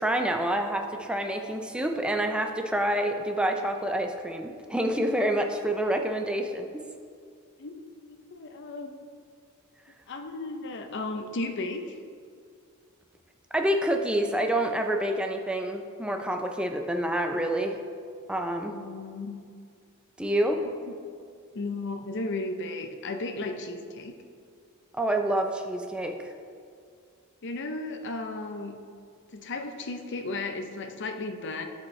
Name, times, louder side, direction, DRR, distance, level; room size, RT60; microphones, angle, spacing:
voice 1, 0.0-6.8 13.5-17.8 18.3-18.7 20.2-20.6 24.9-26.3, right 1 dB, 5° right, 4 dB, 0.4 m, -27 dB
voice 2, 7.6-8.9 10.1-12.0 18.6-19.4 20.6-20.9 21.5-24.2 27.4-28.8 29.3-31.6, left 2 dB, 55° left, 6 dB, 0.6 m, -35 dB
10.5 x 5.3 x 3.1 m, 2.3 s
head